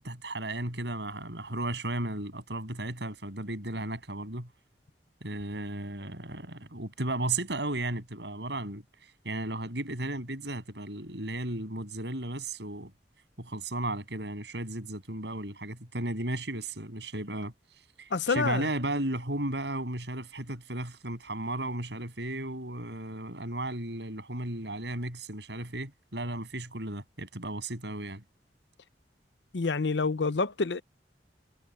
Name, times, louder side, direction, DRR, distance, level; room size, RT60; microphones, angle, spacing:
voice 1, 0.0-4.5 5.2-8.8 9.2-12.9 13.4-17.5 18.0-28.2, right 1 dB, 75° right, 7.8 m, -34 dB
voice 2, 18.1-18.7 29.5-30.8, left 4 dB, 85° left, 0.7 m, -28 dB
head